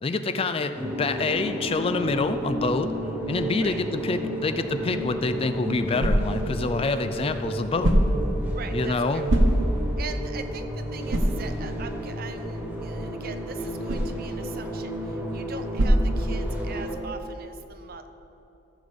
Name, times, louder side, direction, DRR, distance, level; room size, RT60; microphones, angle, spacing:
voice 1, 0.0-2.9 3.3-8.0 8.7-9.3, left 3 dB, 30° left, 9 dB, 0.4 m, -27 dB
sound 1, 0.7-17.0, equal, 10° right, 1.5 m, -33 dB
sound 2, 5.1-16.9, equal, 85° right, 1.0 m, -27 dB
voice 2, 8.5-9.3 10.0-18.1, right 5 dB, 55° right, 9 dB, 0.6 m, -41 dB
14.5 x 6.9 x 3.7 m, 2.9 s
head